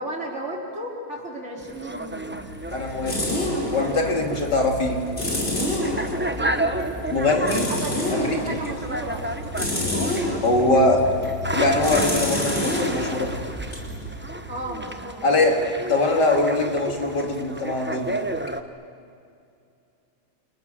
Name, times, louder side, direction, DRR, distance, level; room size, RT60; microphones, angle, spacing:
voice 1, 0.0-2.3 4.0-4.3 6.1-6.6 7.7-9.2 14.5-15.2, right 1 dB, 35° right, -2 dB, 4.8 m, -34 dB
sound 1, 1.6-18.6, right 1 dB, 10° right, 0.5 m, -32 dB
sound 2, 2.1-14.8, left 1 dB, 30° left, 4.9 m, -29 dB
voice 2, 2.7-3.2 3.7-5.0 7.1-7.7 8.1-8.6 10.4-11.1 11.5-13.4 15.2-15.6 15.9-18.3, left 2 dB, 60° left, 2 dB, 3.5 m, -22 dB
29.5 x 28.5 x 6.9 m, 2.5 s
omnidirectional pair, 2.1 m